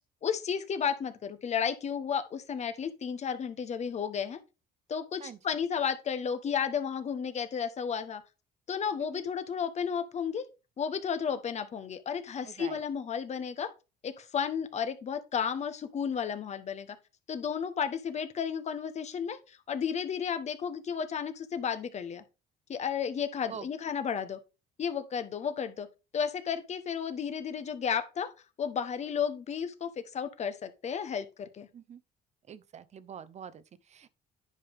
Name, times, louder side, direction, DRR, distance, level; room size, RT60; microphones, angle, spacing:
voice 1, 0.2-4.4 4.9-8.2 8.7-10.5 10.8-13.7 14.0-17.0 17.3-22.2 22.7-24.4 24.8-25.9 26.1-28.3 28.6-31.7, left 7 dB, 40° left, 1.1 m, -33 dB
voice 2, 12.4-12.8 23.5-23.7 31.7-32.0 32.5-34.1, right 7 dB, 40° right, 0.8 m, -45 dB
9.9 x 5.3 x 3.5 m
cardioid pair, 110°, 17 cm